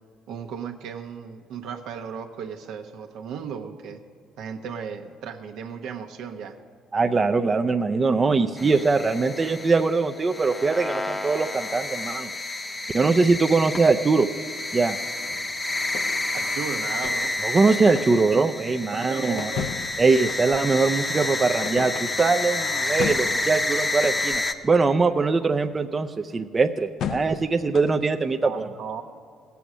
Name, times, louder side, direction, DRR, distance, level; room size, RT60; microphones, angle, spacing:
voice 1, 0.3-4.0 4.4-6.6 16.3-17.3 18.2-18.4 18.9-19.8 28.4-29.0, right 7 dB, 75° right, 5 dB, 0.9 m, -35 dB
voice 2, 6.9-12.3 12.9-14.3 14.7-15.0 17.4-19.5 20.0-28.7, right 4 dB, 30° right, 5 dB, 0.5 m, -22 dB
sound 1, 8.6-24.5, left 2 dB, 20° left, 0.8 m, -29 dB
sound 2, 15.3-16.5 17.0-18.5 19.3-20.9 21.6-22.6 23.0-24.7 27.0-28.1, left 7 dB, 65° left, 0.5 m, -35 dB
16.5 x 7.0 x 6.1 m, 2.3 s
supercardioid pair, 80°, 0 cm